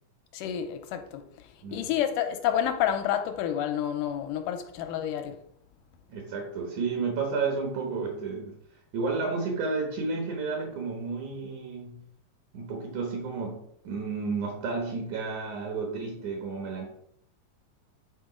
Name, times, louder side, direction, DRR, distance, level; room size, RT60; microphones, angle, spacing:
voice 1, 0.3-5.4, left 10 dB, 80° left, 2.3 m, -29 dB
voice 2, 6.1-8.6 8.9-12.1 12.5-16.9, right 4 dB, 65° right, 2.6 m, -32 dB
8.7 x 3.9 x 5.1 m
omnidirectional pair, 3.8 m